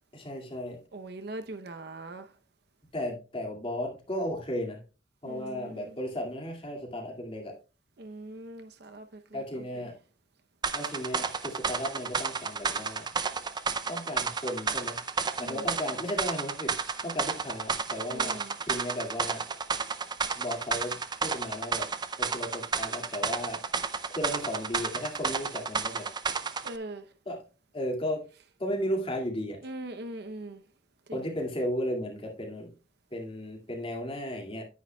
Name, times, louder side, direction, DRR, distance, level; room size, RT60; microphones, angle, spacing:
voice 1, 0.1-0.8 2.9-4.8 5.2-7.5 9.3-9.9 10.7-13.1 13.9-15.0 15.4-19.4 20.4-21.9 22.2-23.6 24.1-26.1 27.3-27.4 27.7-28.3 28.6-29.6 31.1-32.7 33.1-34.6, equal, 30° left, 2.2 m, -35 dB
voice 2, 0.9-2.3 5.2-6.0 8.0-9.8 15.4-15.7 18.1-18.5 26.6-27.1 29.6-30.6 31.1-31.2, right 2 dB, 60° right, 0.7 m, -41 dB
sound 1, 10.6-26.8, right 5 dB, 25° right, 0.5 m, -32 dB
9.6 x 9.5 x 2.3 m
head